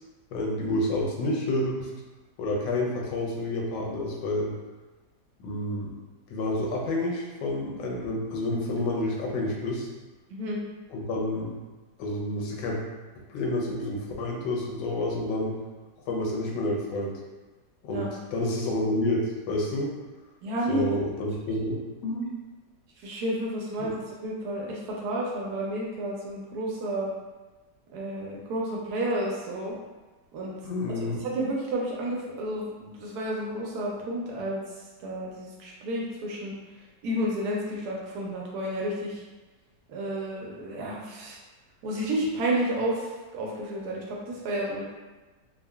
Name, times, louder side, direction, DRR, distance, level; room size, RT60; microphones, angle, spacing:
voice 1, 0.3-1.9 2.4-4.5 5.4-5.9 6.3-9.9 10.9-11.5 12.0-12.8 13.3-15.6 16.1-17.1 17.8-19.9 20.7-22.3 23.8-23.9 30.6-31.2, left 1 dB, 90° left, -1 dB, 1.3 m, -29 dB
voice 2, 10.3-10.6 17.9-18.1 20.4-20.9 23.0-27.1 27.9-29.8 30.3-30.6 30.9-34.6 35.0-36.6 37.0-39.2 39.9-41.4 41.8-44.8, right 1 dB, 70° right, -3 dB, 1.0 m, -31 dB
3.6 x 2.0 x 2.2 m, 1.2 s
omnidirectional pair, 1.8 m